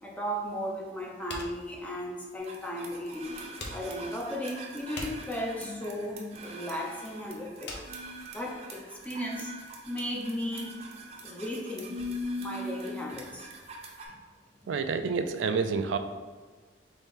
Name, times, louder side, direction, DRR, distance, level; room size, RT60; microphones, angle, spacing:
voice 1, 0.0-3.3 3.7-7.8 8.3-9.5 9.9-10.8 11.2-12.0 12.4-13.5, equal, 5° left, -2 dB, 0.6 m, -35 dB
sound 1, 1.3-8.9, left 2 dB, 65° left, 0.8 m, -44 dB
sound 2, 2.4-14.1, equal, 30° right, 0.6 m, -41 dB
voice 2, 14.7-16.0, right 5 dB, 80° right, 8 dB, 0.3 m, -28 dB
4.2 x 3.5 x 3.5 m, 1.4 s
head